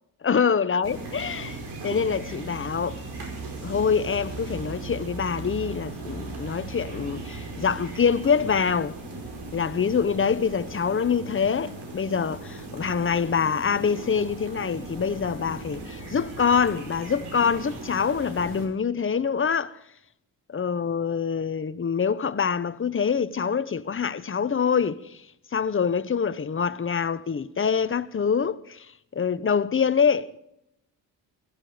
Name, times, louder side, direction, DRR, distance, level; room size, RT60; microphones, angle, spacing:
voice 1, 0.2-1.6 1.8-3.0 3.6-9.0 9.5-19.8 20.5-25.2 25.5-30.4, left 6 dB, 30° left, 1.0 m, -25 dB
sound 1, 0.8-18.7, right 3 dB, 65° right, 5.5 m, -38 dB
16.5 x 15.0 x 5.1 m
supercardioid pair, 75°, 43 cm